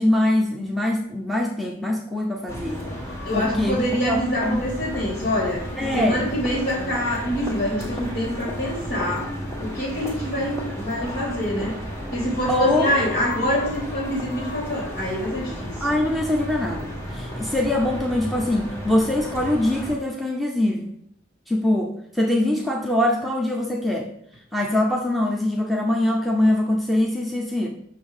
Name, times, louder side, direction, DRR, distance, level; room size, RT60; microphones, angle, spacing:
voice 1, 0.0-2.8 3.3-3.8 4.1-4.7 5.8-6.2 12.5-12.9 15.8-21.0 21.5-24.1 24.5-27.7, left 1 dB, ahead, -1 dB, 0.8 m, -23 dB
sound 1, 2.5-20.0, equal, 15° left, 1.9 m, -33 dB
voice 2, 3.2-5.6 5.9-9.3 9.6-11.7 12.1-15.7, equal, 60° left, -4 dB, 3.4 m, -25 dB
7.8 x 6.3 x 5.0 m, 0.68 s
head